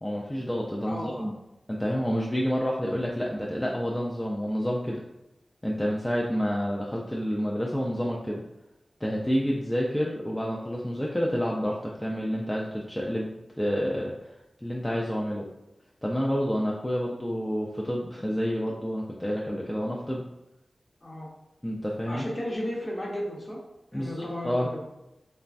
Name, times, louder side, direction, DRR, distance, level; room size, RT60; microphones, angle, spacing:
voice 1, 0.0-1.3 1.7-5.0 5.6-8.4 9.0-13.3 13.6-14.3 14.6-15.5 16.0-20.2 21.6-22.3 23.9-24.7, equal, 15° left, -3 dB, 0.4 m, -29 dB
voice 2, 0.9-1.3 21.0-21.3 22.0-23.6 23.9-25.0, left 1 dB, 35° left, -3 dB, 0.8 m, -34 dB
3.0 x 2.2 x 2.5 m, 0.93 s
cardioid pair, 50°, 0 cm